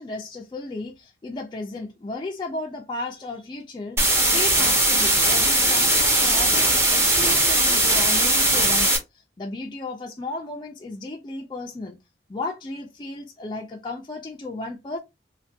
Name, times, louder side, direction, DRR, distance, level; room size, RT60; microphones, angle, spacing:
voice 1, 0.0-4.0 4.3-9.0 9.4-12.0 12.3-15.0, left 2 dB, 25° left, 0.3 m, -34 dB
sound 1, 4.0-9.0, right 1 dB, 15° right, 0.8 m, -19 dB
3.3 x 2.2 x 2.6 m
head